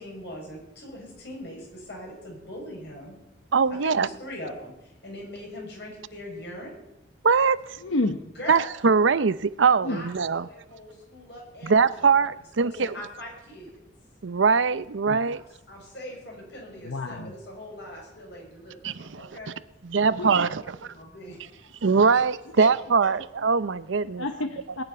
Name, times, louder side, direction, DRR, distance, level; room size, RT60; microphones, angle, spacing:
voice 1, 0.0-3.1 3.8-6.8 8.3-8.7 9.9-12.1 12.6-13.8 15.3-19.5 19.9-21.5 22.1-22.2 22.5-22.7, left 1 dB, 55° left, 6.6 m, -41 dB
voice 2, 3.5-4.1 7.2-7.8 8.5-10.5 11.6-12.9 14.2-15.4 18.8-19.3 19.8-20.6 21.8-24.3, right 5 dB, 75° right, 0.6 m, -22 dB
voice 3, 7.8-8.2 9.8-10.0 15.0-15.2 16.8-17.3 20.0-20.5 24.2-24.8, left 2 dB, 90° left, 1.0 m, -30 dB
19.5 x 7.1 x 9.6 m
head